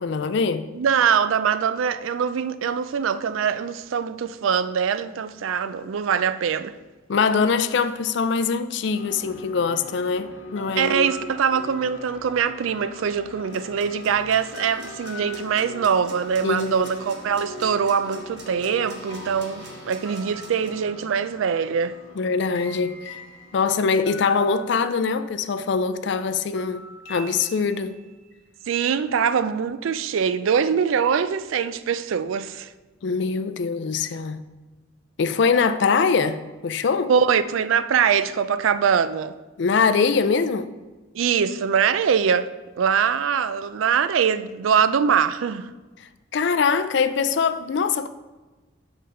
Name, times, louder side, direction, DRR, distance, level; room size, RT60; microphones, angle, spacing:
voice 1, 0.0-0.7 7.1-11.1 16.4-16.9 22.2-23.2 23.5-28.0 33.0-34.4 35.2-37.1 39.6-40.7 46.3-48.1, left 5 dB, 60° left, 0.4 m, -23 dB
voice 2, 0.8-6.7 10.8-21.9 28.7-32.7 37.1-39.4 41.1-42.5 42.8-45.7, right 7 dB, 90° right, 0.4 m, -23 dB
sound 1, 8.9-25.6 26.5-28.2, left 1 dB, 90° left, 1.1 m, -41 dB
sound 2, 13.5-20.7, right 3 dB, 60° right, 1.1 m, -47 dB
6.4 x 3.9 x 5.6 m
head